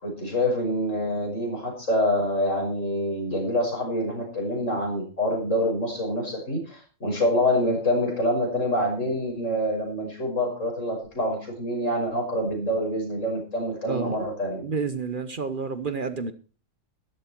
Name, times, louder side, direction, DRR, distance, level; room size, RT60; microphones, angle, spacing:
voice 1, 0.0-14.6, left 1 dB, 75° left, 6.3 m, -26 dB
voice 2, 13.8-14.2 14.6-16.3, right 5 dB, 45° right, 1.0 m, -29 dB
13.5 x 12.0 x 4.5 m
omnidirectional pair, 1.3 m